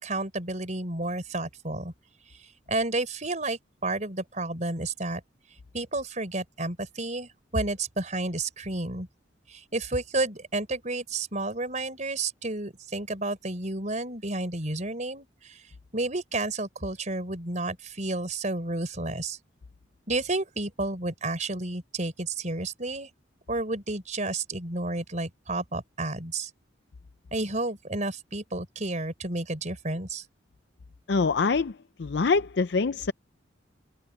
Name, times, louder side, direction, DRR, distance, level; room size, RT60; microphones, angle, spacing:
voice 1, 0.0-1.9 2.3-5.2 5.7-9.1 9.5-19.4 20.1-23.1 23.5-26.5 27.3-30.2, right 2 dB, 40° right, 4.8 m, -31 dB
voice 2, 31.1-31.7 32.0-33.1, left 4 dB, 65° left, 0.5 m, -24 dB
head